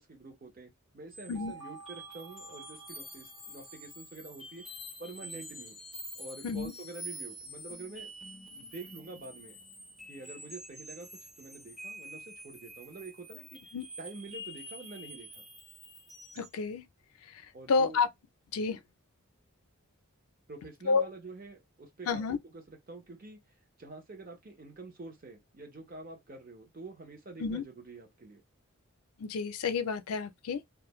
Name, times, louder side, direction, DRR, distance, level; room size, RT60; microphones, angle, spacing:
voice 1, 0.0-4.6 5.0-5.8 6.2-8.1 8.5-9.6 10.1-11.1 11.4-13.6 14.0-15.4 17.5-18.0 18.6-18.8 20.5-23.4 23.8-28.4, right 2 dB, 40° right, 0.8 m, -47 dB
sound 1, 1.1-16.6, equal, ahead, 0.4 m, -47 dB
voice 2, 16.4-16.8 17.7-18.1 18.5-18.8 20.9-21.1 22.1-22.4 27.4-27.6 29.2-30.6, left 5 dB, 80° left, 0.4 m, -29 dB
2.4 x 2.1 x 3.0 m
head